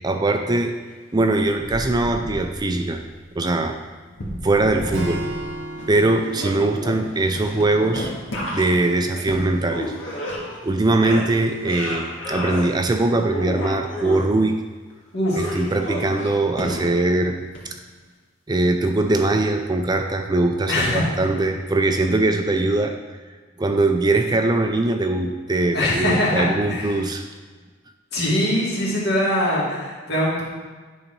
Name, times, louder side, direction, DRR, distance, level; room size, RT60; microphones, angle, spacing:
voice 1, 0.0-0.8 1.1-3.0 3.3-3.8 4.4-5.2 5.9-8.1 8.5-9.9 10.6-14.6 15.4-17.4 17.6-17.8 18.5-23.0 23.6-27.3, right 2 dB, 20° right, 5 dB, 0.4 m, -21 dB
sound 1, 1.4-2.9 4.1-5.5 5.8-10.7 11.0-12.7 13.1-14.2 15.3-17.1 17.5-17.6, equal, 85° left, 1.9 m, -31 dB
Acoustic guitar / Strum, 4.9-8.4, right 1 dB, 80° right, 1.1 m, -34 dB
voice 2, 15.1-15.6 20.7-21.1 25.7-26.9 28.1-30.4, left 1 dB, 60° left, -6 dB, 2.5 m, -22 dB
9.8 x 4.0 x 5.4 m, 1.4 s
head